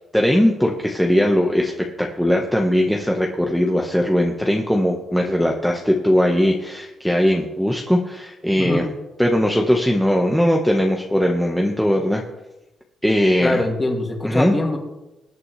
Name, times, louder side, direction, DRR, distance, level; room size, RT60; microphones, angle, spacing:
voice 1, 0.0-8.8 9.2-12.2 13.0-13.6 14.2-14.5, equal, ahead, 0 dB, 1.3 m, -19 dB
voice 2, 13.4-14.8, left 2 dB, 20° left, 2 dB, 2.4 m, -23 dB
20.0 x 8.4 x 3.3 m, 0.99 s
cardioid pair, 90°, 0 cm